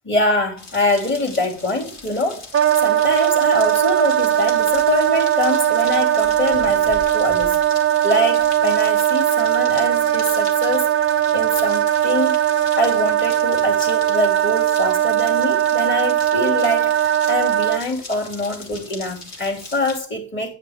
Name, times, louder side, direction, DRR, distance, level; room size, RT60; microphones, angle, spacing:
voice 1, 0.0-2.5 2.8-7.6 8.0-10.9 11.3-12.5 12.8-20.5, left 2 dB, 40° left, 2.8 m, -24 dB
sound 1, 0.6-20.0, left 3 dB, 60° left, 2.9 m, -39 dB
Wind instrument woodwind instrument, 2.5-17.8, right 11 dB, 45° right, 0.4 m, -19 dB
9.7 x 8.5 x 3.5 m
wide cardioid pair, 115°, 30 cm